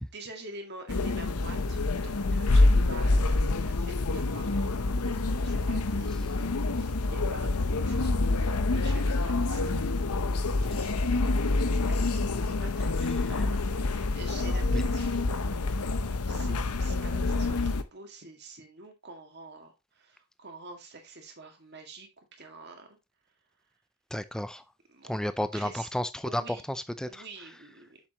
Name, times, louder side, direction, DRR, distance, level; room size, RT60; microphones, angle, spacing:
voice 1, 0.0-9.8 10.6-23.0 24.9-25.1 25.5-25.9 26.2-26.6 27.1-28.0, right 3 dB, 50° right, 2.0 m, -48 dB
sound 1, 0.9-17.8, left 2 dB, 90° left, 0.8 m, -27 dB
voice 2, 24.1-24.6 25.1-26.4 26.7-27.1, left 1 dB, 5° left, 0.5 m, -32 dB
7.5 x 7.2 x 3.0 m
head